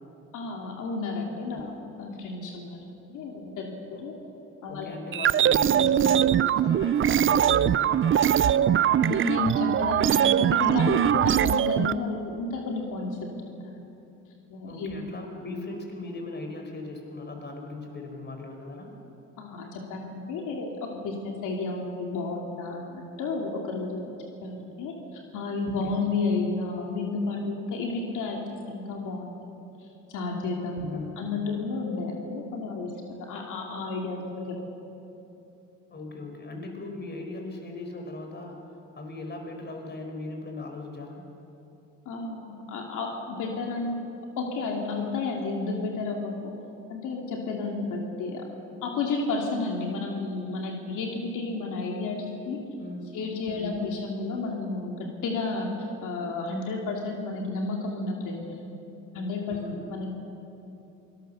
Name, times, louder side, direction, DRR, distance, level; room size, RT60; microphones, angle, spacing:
voice 1, 0.3-2.8 3.1-4.1 4.6-5.0 8.9-13.7 14.5-14.9 19.4-24.1 24.4-24.9 25.3-28.4 28.7-29.3 30.1-34.6 42.1-44.0 44.4-46.5 46.9-48.4 48.8-52.6 53.1-58.6 59.1-59.6 59.9-60.2, left 3 dB, 85° left, 0 dB, 2.7 m, -32 dB
voice 2, 4.7-8.6 14.6-18.9 25.8-26.0 30.8-31.1 35.9-38.6 39.0-41.2 52.8-53.1 53.5-53.7 59.5-59.8, left 2 dB, 35° left, 3 dB, 4.7 m, -38 dB
sound 1, 5.1-11.9, right 10 dB, 40° right, 0.5 m, -22 dB
25.0 x 19.0 x 6.8 m, 2.9 s
cardioid pair, 90°, 30 cm